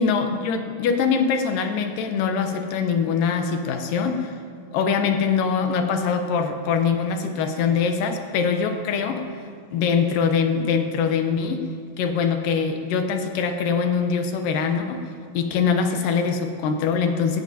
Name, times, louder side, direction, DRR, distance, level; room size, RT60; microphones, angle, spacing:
voice 1, 0.0-4.3 4.7-9.3 9.7-11.6 12.0-15.0 15.3-17.4, left 6 dB, 85° left, 5 dB, 2.7 m, -23 dB
17.0 x 16.5 x 2.9 m, 2.2 s
omnidirectional pair, 3.8 m